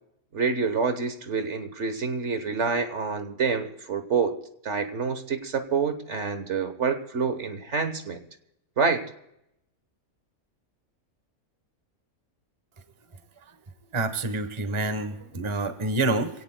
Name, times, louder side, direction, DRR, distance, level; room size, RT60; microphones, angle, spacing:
voice 1, 0.3-4.4 4.6-8.2 8.8-9.1, right 5 dB, 55° right, 9 dB, 1.3 m, -27 dB
voice 2, 13.9-16.3, right 2 dB, 25° right, 10 dB, 1.0 m, -27 dB
26.0 x 17.5 x 2.2 m, 0.81 s
omnidirectional pair, 1.5 m